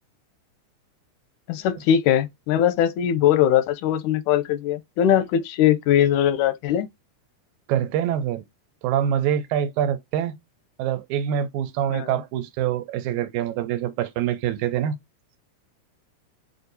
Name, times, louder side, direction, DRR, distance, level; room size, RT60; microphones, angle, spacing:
voice 1, 1.5-6.9 11.9-12.1, left 10 dB, 85° left, 2.1 m, -21 dB
voice 2, 7.7-8.4 8.8-10.4 10.8-14.9, right 10 dB, 85° right, 2.0 m, -25 dB
6.6 x 2.6 x 2.6 m
omnidirectional pair, 3.4 m